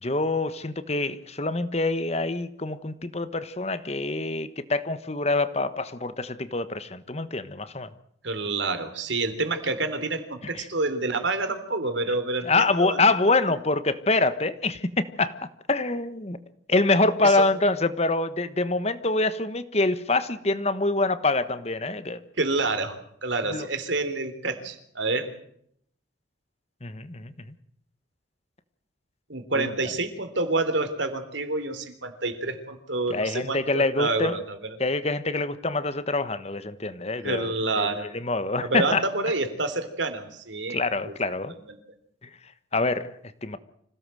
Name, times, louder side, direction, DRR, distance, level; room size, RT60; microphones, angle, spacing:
voice 1, 0.0-7.9 10.5-10.7 12.4-15.3 15.7-16.4 16.7-22.2 23.5-23.7 26.8-27.3 29.5-29.7 33.1-34.4 34.8-39.0 40.7-41.5 42.7-43.1 43.4-43.6, left 2 dB, 35° left, 12 dB, 1.3 m, -25 dB
voice 2, 8.2-13.0 17.2-17.4 22.4-25.3 29.3-34.8 37.2-38.1 38.6-40.8 41.0-41.1 41.7-41.8, right 3 dB, 80° right, 9 dB, 3.5 m, -28 dB
26.0 x 17.0 x 7.7 m, 0.70 s
head